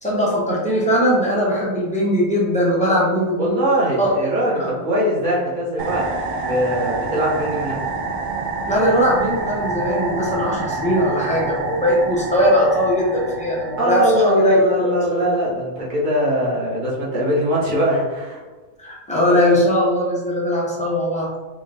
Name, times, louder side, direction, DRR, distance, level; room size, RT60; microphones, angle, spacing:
voice 1, 0.0-4.1 4.6-4.7 8.7-15.2 18.8-21.3, equal, 5° left, -6 dB, 0.7 m, -20 dB
voice 2, 3.4-6.1 6.4-7.8 13.8-18.4, equal, 35° right, -5 dB, 1.1 m, -21 dB
sound 1, 5.8-14.6, right 3 dB, 60° right, 0.5 m, -27 dB
3.9 x 2.5 x 3.3 m, 1.3 s
omnidirectional pair, 1.4 m